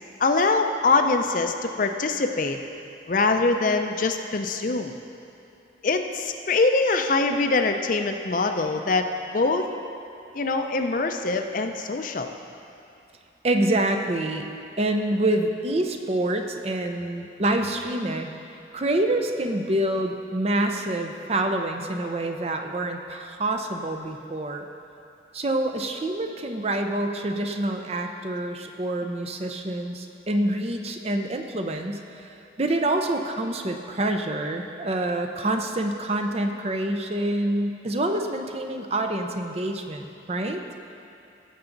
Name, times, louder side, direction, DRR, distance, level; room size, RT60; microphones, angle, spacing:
voice 1, 0.2-2.6 3.1-4.9 5.8-9.7 10.3-12.3, left 3 dB, 45° left, 6 dB, 0.5 m, -23 dB
voice 2, 13.4-14.5 14.8-18.3 18.7-24.7 25.3-40.6, right 1 dB, 35° right, 5 dB, 0.6 m, -27 dB
16.5 x 7.0 x 3.9 m, 2.6 s
head